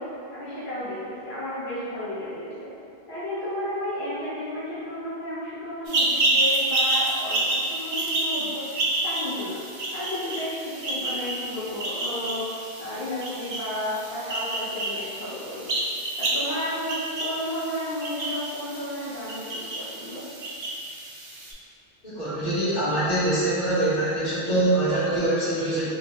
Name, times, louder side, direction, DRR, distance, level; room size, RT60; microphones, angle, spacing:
voice 1, 0.0-2.7 3.1-9.6 9.9-12.5 12.8-15.7 16.2-20.2, left 1 dB, 80° left, -11 dB, 1.0 m, -33 dB
sound 1, 5.9-21.5, right 2 dB, 50° right, 0.6 m, -29 dB
voice 2, 22.0-25.9, right 1 dB, 45° left, -12 dB, 1.4 m, -24 dB
4.4 x 2.1 x 2.9 m, 2.6 s
omnidirectional pair, 1.0 m